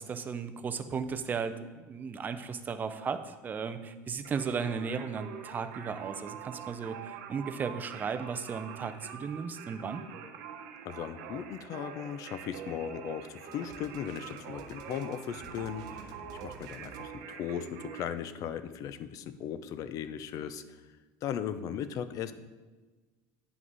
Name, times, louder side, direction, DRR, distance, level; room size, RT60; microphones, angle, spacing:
voice 1, 0.0-10.0, right 6 dB, 20° right, 9 dB, 0.5 m, -35 dB
Singing, 4.2-18.0, right 8 dB, 75° right, 0.9 m, -45 dB
voice 2, 10.8-16.2 16.4-20.6 21.2-22.3, left 9 dB, 40° left, 12 dB, 0.5 m, -37 dB
sound 1, 13.5-17.1, right 5 dB, 50° right, 0.8 m, -51 dB
9.2 x 6.0 x 4.0 m, 1.3 s
cardioid pair, 150°, 9 cm